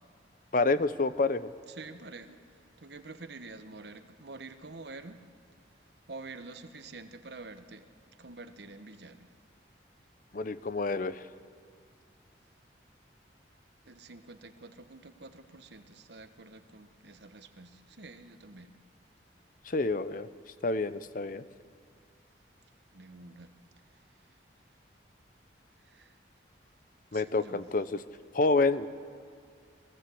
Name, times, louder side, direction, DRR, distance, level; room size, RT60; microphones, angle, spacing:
voice 1, 0.5-1.5 10.3-11.2 19.7-20.3 20.6-21.4 27.1-27.9 28.3-28.9, left 3 dB, 45° left, 14 dB, 0.6 m, -28 dB
voice 2, 1.7-2.4 2.8-5.2 6.1-7.9 8.2-9.3 13.8-18.7 22.9-23.5 25.8-26.2 27.1-27.6, right 3 dB, 65° right, 9 dB, 1.1 m, -47 dB
21.5 x 16.5 x 7.8 m, 2.2 s
head